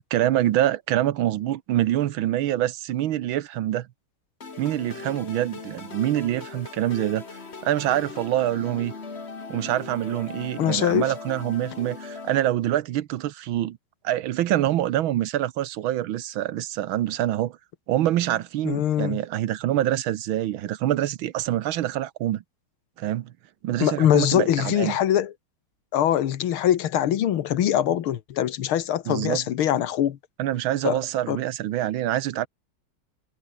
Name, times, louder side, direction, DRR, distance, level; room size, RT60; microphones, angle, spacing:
voice 1, 0.0-3.9 4.6-7.2 7.6-8.9 9.5-13.8 14.0-17.6 17.9-22.4 23.0-23.3 23.6-25.0 29.1-29.4 30.4-32.5, right 13 dB, 80° right, 1.7 m, -25 dB
sound 1, 4.4-12.4, left 4 dB, 30° left, 2.2 m, -39 dB
voice 2, 10.6-11.1 18.6-19.2 23.8-25.3 25.9-30.2 30.8-31.0 31.3-31.4, left 11 dB, 90° left, 2.0 m, -23 dB
omnidirectional pair, 2.3 m